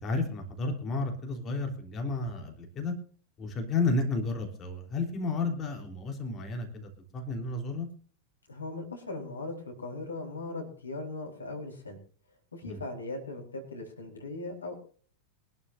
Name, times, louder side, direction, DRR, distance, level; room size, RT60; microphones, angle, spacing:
voice 1, 0.0-3.0 3.4-7.9 12.6-12.8, left 3 dB, 25° left, 3 dB, 3.6 m, -32 dB
voice 2, 8.5-12.0 12.5-14.8, left 2 dB, 75° left, 3 dB, 4.2 m, -39 dB
23.5 x 12.5 x 2.6 m, 0.42 s
figure-of-eight pair, 90°, 0 cm